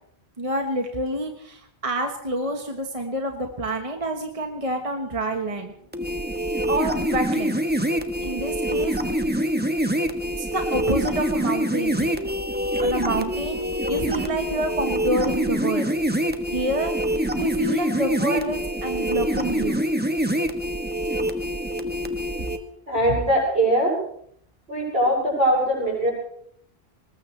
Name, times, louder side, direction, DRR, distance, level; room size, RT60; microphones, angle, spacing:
voice 1, 0.4-5.7 6.7-7.6 8.2-8.9 10.4-12.2 12.8-15.9 16.5-16.9 17.4-19.8, right 1 dB, 30° right, 4 dB, 1.4 m, -28 dB
sound 1, 5.9-22.6, equal, 10° right, 1.1 m, -25 dB
voice 2, 22.9-24.0 24.7-26.1, right 1 dB, 70° right, -3 dB, 7.2 m, -21 dB
20.5 x 19.5 x 3.3 m, 0.67 s
omnidirectional pair, 1.1 m